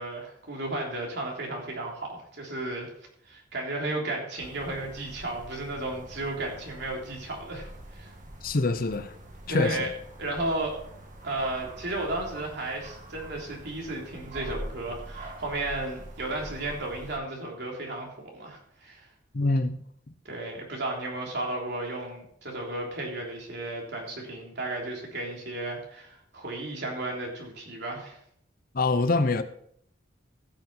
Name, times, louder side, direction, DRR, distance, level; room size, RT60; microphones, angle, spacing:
voice 1, 0.0-2.9 3.3-7.7 7.9-8.1 9.5-9.9 10.2-10.8 11.2-19.1 20.3-28.2, right 2 dB, 60° right, -1 dB, 3.5 m, -34 dB
sound 1, 4.4-17.2, right 1 dB, 45° right, 1.8 m, -44 dB
voice 2, 8.4-9.1 9.5-9.9 19.3-19.8 28.7-29.4, left 3 dB, 50° left, 11 dB, 0.8 m, -25 dB
16.0 x 6.8 x 4.3 m, 0.67 s
head